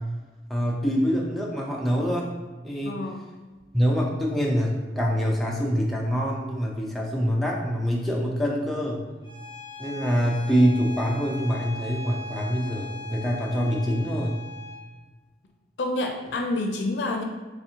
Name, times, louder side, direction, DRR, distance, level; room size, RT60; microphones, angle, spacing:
voice 1, 0.5-2.3 2.6-3.0 3.7-9.1 9.8-14.3, equal, ahead, -3 dB, 0.4 m, -25 dB
voice 2, 2.8-3.3 15.8-17.2, left 2 dB, 80° left, 3 dB, 0.5 m, -28 dB
Bowed string instrument, 9.2-14.8, left 3 dB, 25° left, 1.2 m, -39 dB
3.3 x 2.6 x 2.7 m, 1.3 s
head